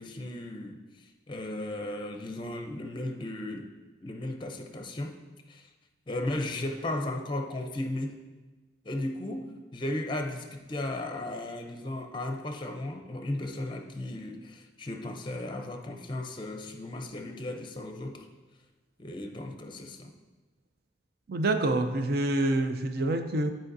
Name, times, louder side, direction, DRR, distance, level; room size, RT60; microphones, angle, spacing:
voice 1, 0.0-3.7 4.0-5.2 5.5-5.7 6.1-8.2 8.8-18.3 19.0-20.1, left 1 dB, 25° left, 4 dB, 0.6 m, -35 dB
voice 2, 21.3-23.5, right 2 dB, 55° right, 7 dB, 0.5 m, -27 dB
12.5 x 4.4 x 2.6 m, 1.2 s
head